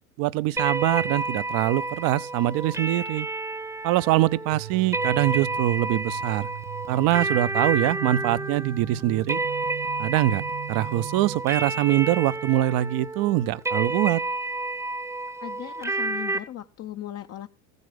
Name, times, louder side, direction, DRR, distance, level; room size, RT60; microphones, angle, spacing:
voice 1, 0.2-3.3 3.8-6.5 6.9-9.4 10.0-14.2, right 15 dB, 55° right, 0.8 m, -23 dB
sound 1, 0.6-16.4, right 2 dB, 5° right, 0.9 m, -30 dB
sound 2, 4.5-11.4, right 21 dB, 80° right, 0.5 m, -39 dB
voice 2, 15.4-17.5, left 12 dB, 35° left, 0.8 m, -37 dB
15.0 x 8.2 x 5.0 m
hypercardioid pair, 80°, 42 cm